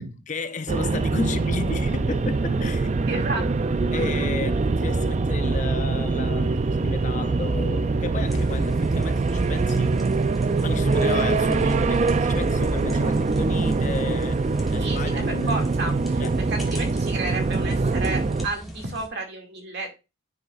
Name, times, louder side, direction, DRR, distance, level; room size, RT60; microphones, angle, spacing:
voice 1, 0.3-3.0 3.9-10.0 10.6-15.7 16.2-16.3, left 3 dB, 35° left, 0.5 m, -33 dB
sound 1, 0.7-18.5, right 3 dB, 30° right, 0.3 m, -23 dB
voice 2, 3.1-3.4 14.8-16.2 16.5-19.9, right 3 dB, 50° right, 2.2 m, -32 dB
sound 2, 8.3-19.1, equal, ahead, 1.7 m, -40 dB
10.0 x 6.5 x 2.4 m
head